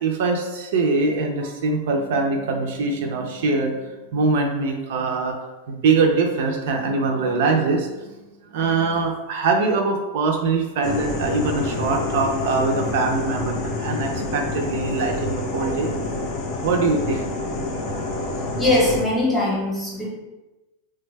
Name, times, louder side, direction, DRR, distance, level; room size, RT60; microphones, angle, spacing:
voice 1, 0.0-5.4 5.7-7.9 8.5-16.1 16.5-17.2 17.9-18.1, right 3 dB, 60° right, 3 dB, 0.4 m, -23 dB
sound 1, 10.8-19.0, left 2 dB, 30° left, 0.4 m, -27 dB
voice 2, 18.6-20.1, left 1 dB, 5° left, -5 dB, 0.7 m, -21 dB
3.3 x 2.2 x 3.2 m, 1.1 s
supercardioid pair, 175°, 0 cm